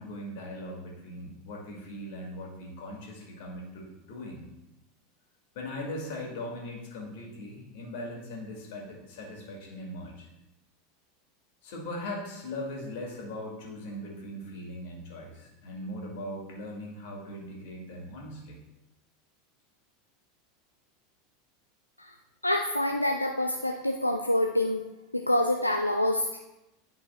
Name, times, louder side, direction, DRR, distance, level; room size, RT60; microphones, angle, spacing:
voice 1, 0.0-4.4 5.5-10.3 11.6-18.6, left 1 dB, 55° left, -1 dB, 2.1 m, -39 dB
voice 2, 22.4-24.9 25.1-26.4, left 1 dB, 90° left, 3 dB, 0.4 m, -26 dB
11.0 x 5.6 x 2.3 m, 0.95 s
figure-of-eight pair, 80°, 0 cm